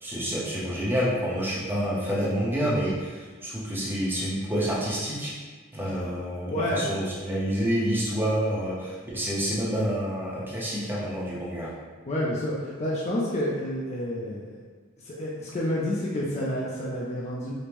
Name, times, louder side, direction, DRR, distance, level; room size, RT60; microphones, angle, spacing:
voice 1, 0.0-5.3 5.7-11.7, equal, 10° right, -7 dB, 0.7 m, -28 dB
voice 2, 5.8-6.1 6.5-6.8 12.1-14.5 15.0-17.5, left 1 dB, 30° left, -5 dB, 0.4 m, -29 dB
5.1 x 2.0 x 2.9 m, 1.4 s
head